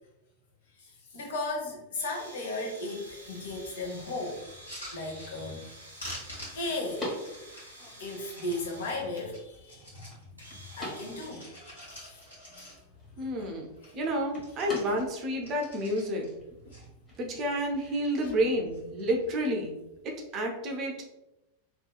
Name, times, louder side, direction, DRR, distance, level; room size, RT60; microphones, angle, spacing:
voice 1, 0.8-4.4 4.9-5.6 6.5-7.0 8.0-10.0 10.7-12.2 12.5-12.7 13.3-13.5 13.8-14.0 18.2-18.3, left 2 dB, 60° left, -1 dB, 0.7 m, -36 dB
sound 1, 2.0-9.1 10.0-10.1 10.4-11.3, right 1 dB, 85° right, 0.7 m, -49 dB
sound 2, 3.1-18.5, left 1 dB, 15° left, 1.2 m, -47 dB
sound 3, 4.6-5.7 6.0-8.6 9.1-10.2 10.6-13.1 13.4-13.5 13.7-14.0 14.3-16.3 16.7-17.4 17.9-18.4 18.7-19.3 20.1-20.4, equal, 80° left, 1.3 m, -47 dB
voice 2, 13.2-13.7 13.9-16.3 17.2-19.8 20.0-21.0, equal, 35° right, 1 dB, 0.5 m, -30 dB
2.8 x 2.3 x 2.3 m, 0.95 s
figure-of-eight pair, 90°, 0 cm